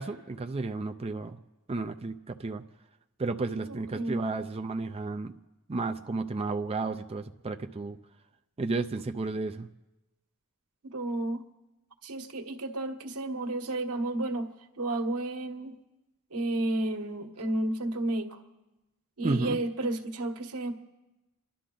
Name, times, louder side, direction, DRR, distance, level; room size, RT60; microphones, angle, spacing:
voice 1, 0.0-1.4 1.7-2.6 3.2-5.3 5.7-8.0 8.6-9.7 19.2-19.6, right 3 dB, 25° right, 6 dB, 0.5 m, -32 dB
voice 2, 3.6-4.2 10.8-11.4 12.0-14.5 14.8-15.8 16.3-18.4 19.2-20.7, right 2 dB, 90° right, 5 dB, 1.4 m, -32 dB
28.5 x 11.5 x 3.9 m, 1.0 s
head